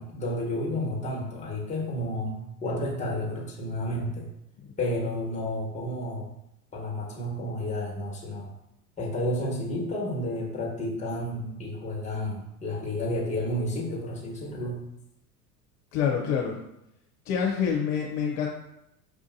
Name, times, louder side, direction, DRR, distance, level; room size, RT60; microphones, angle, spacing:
voice 1, 0.0-4.3 4.8-6.3 6.7-8.5 9.0-14.8, left 1 dB, 15° left, -2 dB, 1.3 m, -31 dB
voice 2, 15.9-16.6 17.3-18.5, left 7 dB, 55° left, -1 dB, 0.7 m, -26 dB
6.0 x 2.5 x 2.7 m, 0.81 s
hypercardioid pair, 85°, 48 cm